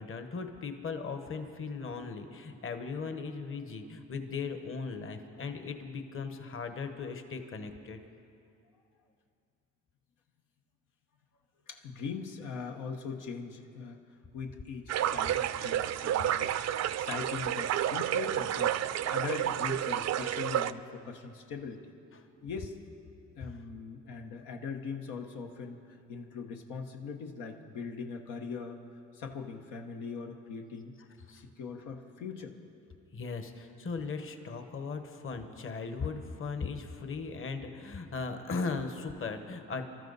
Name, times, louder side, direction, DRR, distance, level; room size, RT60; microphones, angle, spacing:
voice 1, 0.0-8.0 23.4-23.6 31.3-31.4 33.1-39.8, left 4 dB, 45° left, 7 dB, 1.2 m, -38 dB
voice 2, 11.7-14.0 14.3-21.9 22.4-22.7 23.4-28.8 29.1-30.9 31.3-32.5, left 5 dB, 90° left, 3 dB, 1.1 m, -41 dB
sound 1, 14.9-20.7, right 11 dB, 60° right, 0.5 m, -30 dB
25.5 x 13.0 x 4.1 m, 2.6 s
cardioid pair, 90°, 30 cm